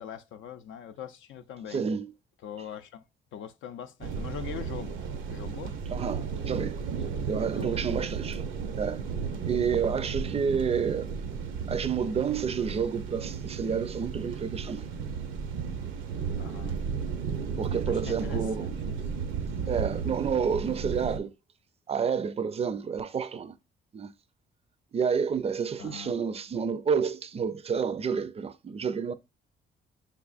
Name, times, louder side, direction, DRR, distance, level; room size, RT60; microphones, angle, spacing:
voice 1, 0.0-1.8 2.4-3.0 3.3-5.7 7.5-7.8 16.4-16.7 17.9-19.0 25.8-26.1, left 9 dB, 75° left, 0.5 m, -42 dB
voice 2, 1.7-2.1 5.9-6.8 7.3-8.4 8.8-9.0 9.4-11.1 11.7-14.9 17.6-18.7 19.7-21.3 21.9-23.5 23.9-24.1 24.9-29.1, right 6 dB, 30° right, 0.4 m, -29 dB
sound 1, 4.0-21.2, right 6 dB, 80° right, 0.6 m, -34 dB
5.5 x 3.5 x 2.4 m
cardioid pair, 90°, 20 cm